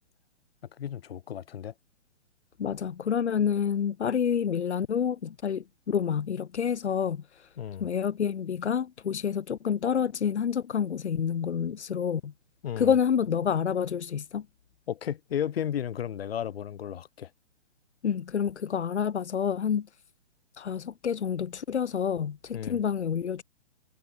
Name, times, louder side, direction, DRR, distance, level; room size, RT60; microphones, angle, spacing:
voice 1, 0.8-1.7 7.6-7.9 12.6-12.9 14.9-17.3 22.5-22.8, left 9 dB, 60° left, 2.0 m, -33 dB
voice 2, 2.6-7.2 7.8-12.3 12.8-14.5 18.0-19.9 20.6-23.4, left 7 dB, 80° left, 1.9 m, -28 dB
hypercardioid pair, 155°, 34 cm